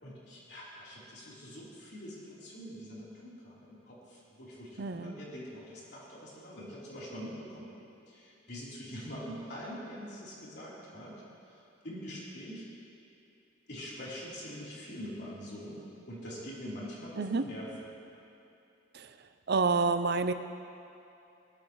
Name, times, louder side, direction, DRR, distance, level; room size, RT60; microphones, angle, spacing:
voice 1, 0.0-7.7 8.1-11.2 11.4-12.6 13.7-17.7, equal, 65° left, -7 dB, 3.7 m, -44 dB
voice 2, 4.8-5.2 17.2-17.5 18.9-19.2 19.5-20.3, right 4 dB, 60° right, 10 dB, 0.6 m, -28 dB
20.5 x 12.0 x 3.2 m, 2.8 s
head